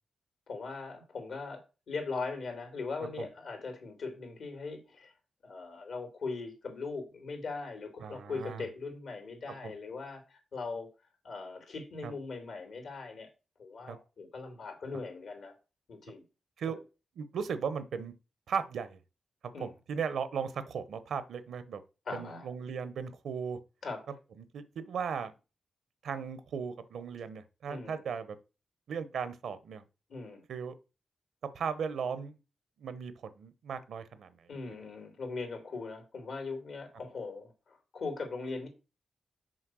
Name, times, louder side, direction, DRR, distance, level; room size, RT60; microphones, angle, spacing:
voice 1, 0.5-5.1 5.4-10.9 11.2-13.3 13.6-15.5 15.9-16.2 16.6-16.8 19.5-19.7 22.0-22.5 23.8-24.1 27.7-28.0 30.1-30.4 34.5-38.7, left 4 dB, 80° left, 3.0 m, -40 dB
voice 2, 8.0-8.6 9.6-9.7 12.0-12.1 13.9-14.0 16.6-16.8 17.2-18.1 18.5-19.0 19.6-21.8 22.1-23.6 24.4-25.3 26.0-28.4 28.9-29.8 30.5-30.7 31.5-32.4 32.8-34.5, right 6 dB, 85° right, 0.9 m, -37 dB
6.4 x 4.6 x 6.2 m
cardioid pair, 55°, 0 cm